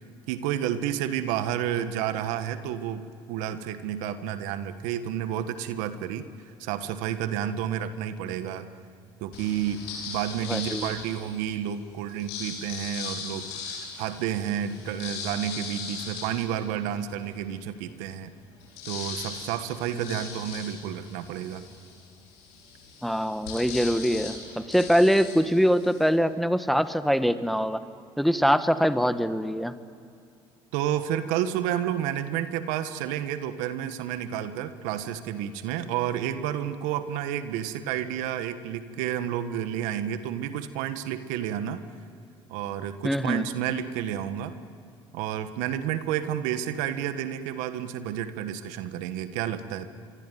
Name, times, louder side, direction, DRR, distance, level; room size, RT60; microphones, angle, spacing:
voice 1, 0.3-6.3 6.6-8.7 9.2-18.3 18.8-21.6 30.7-41.8 42.5-44.6 45.1-49.9, right 10 dB, 80° right, 10 dB, 1.5 m, -30 dB
sound 1, 9.3-11.5 12.1-17.3 17.7-17.8 18.1-26.1, left 5 dB, 85° left, 6.1 m, -39 dB
voice 2, 10.5-10.9 19.9-20.1 23.0-27.8 28.2-29.7 43.0-43.4, equal, ahead, 11 dB, 1.4 m, -23 dB
26.0 x 23.0 x 9.3 m, 2.4 s
hypercardioid pair, 70°, 13 cm